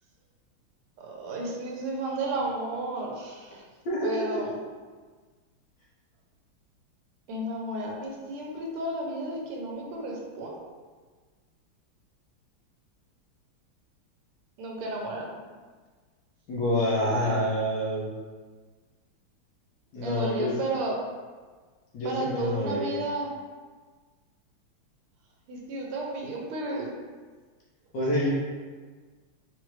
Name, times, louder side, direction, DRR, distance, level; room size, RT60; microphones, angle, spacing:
voice 1, 1.0-3.6 4.0-4.6 7.3-10.6 14.6-15.4 20.0-21.0 22.0-23.3 25.5-26.9, right 2 dB, 85° right, -1 dB, 1.6 m, -33 dB
voice 2, 3.8-4.4 16.5-18.1 19.9-20.5 21.9-23.0 27.9-28.3, left 1 dB, 65° left, -6 dB, 1.3 m, -27 dB
4.5 x 2.5 x 3.0 m, 1.4 s
omnidirectional pair, 2.3 m